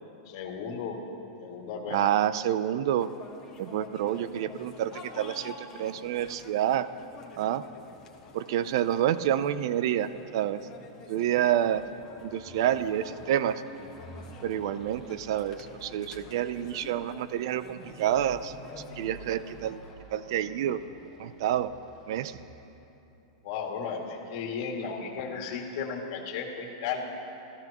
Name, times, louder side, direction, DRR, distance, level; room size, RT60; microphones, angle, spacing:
voice 1, 0.3-1.0 1.4-2.1 23.4-27.0, left 6 dB, 50° left, 1 dB, 2.4 m, -34 dB
voice 2, 1.9-3.1 3.6-6.9 7.4-7.6 8.3-10.6 11.1-11.9 12.2-13.6 14.4-18.5 19.0-19.8 20.1-20.8 21.2-21.7 22.1-22.4, right 11 dB, 60° right, 14 dB, 0.5 m, -28 dB
sound 1, 3.0-19.9, left 4 dB, 25° left, 1.4 m, -49 dB
sound 2, 12.0-22.8, right 1 dB, 20° right, 4.2 m, -50 dB
29.0 x 14.5 x 3.0 m, 2.9 s
supercardioid pair, 155°, 3 cm